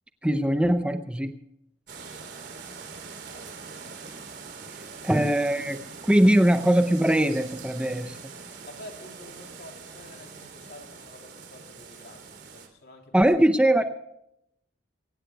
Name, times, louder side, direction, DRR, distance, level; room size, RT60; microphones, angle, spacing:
voice 1, 0.2-1.4 5.0-8.2 13.1-13.8, right 1 dB, 5° right, 7 dB, 0.6 m, -21 dB
sound 1, 1.9-12.7, right 5 dB, 55° right, 3.4 m, -43 dB
voice 2, 8.4-13.3 13.7-13.8, left 1 dB, 55° left, 2 dB, 3.4 m, -48 dB
24.5 x 18.0 x 2.3 m, 0.78 s
head